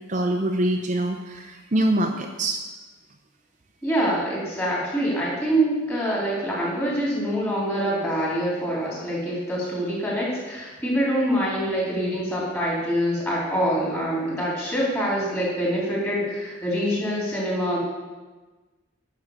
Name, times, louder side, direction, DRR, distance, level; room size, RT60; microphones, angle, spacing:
voice 1, 0.1-2.6, right 1 dB, 40° right, 2 dB, 0.7 m, -24 dB
voice 2, 3.8-17.8, equal, 10° left, -5 dB, 3.6 m, -25 dB
11.0 x 6.0 x 6.6 m, 1.2 s
head